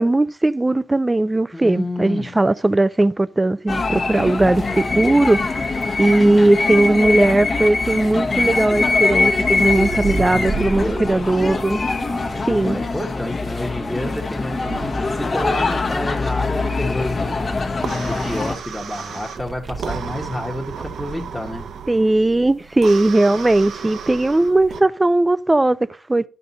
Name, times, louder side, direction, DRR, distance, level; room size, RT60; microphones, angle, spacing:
voice 1, 0.0-5.7 6.0-11.8 12.5-12.8 21.9-26.3, right 2 dB, 15° right, 0.4 m, -18 dB
voice 2, 1.5-2.4 9.6-11.6 12.1-21.7, left 1 dB, 5° left, 1.3 m, -30 dB
sound 1, 3.7-18.6, left 3 dB, 35° left, 1.2 m, -23 dB
sound 2, 8.7-12.8 13.7-16.1 19.4-20.3 20.6-21.1, right 5 dB, 40° right, 0.8 m, -33 dB
sound 3, 16.6-24.8, right 7 dB, 70° right, 0.8 m, -34 dB
11.0 x 5.2 x 4.1 m
cardioid pair, 90°, 0 cm